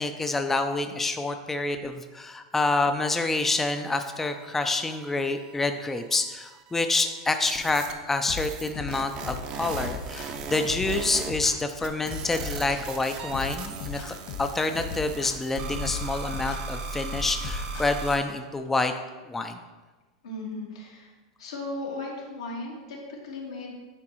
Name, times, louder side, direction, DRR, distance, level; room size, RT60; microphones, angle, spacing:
voice 1, 0.0-18.9 19.3-19.6, left 3 dB, 10° left, 7 dB, 0.4 m, -27 dB
sound 1, 3.2-5.8 6.1-6.7 7.5-7.9 8.3-11.5 11.8-18.2, right 4 dB, 45° right, 0.7 m, -38 dB
sound 2, 8.3-18.3, left 6 dB, 60° left, 1.6 m, -37 dB
voice 2, 20.2-21.1 21.4-23.7, left 2 dB, 90° left, -2 dB, 1.7 m, -36 dB
9.7 x 3.9 x 3.0 m, 1.2 s
hypercardioid pair, 110°, 3 cm